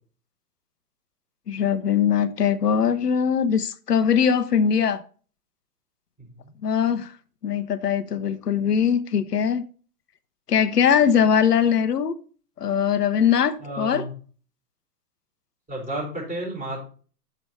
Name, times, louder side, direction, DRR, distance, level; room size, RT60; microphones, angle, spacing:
voice 1, 1.5-5.0 6.6-7.1 7.4-9.6 10.5-12.1 12.6-14.0, left 7 dB, 80° left, 0.9 m, -21 dB
voice 2, 6.2-6.5 13.6-14.1 15.7-16.8, right 1 dB, 15° right, 4.6 m, -32 dB
7.2 x 6.2 x 5.5 m
figure-of-eight pair, 115°, 46 cm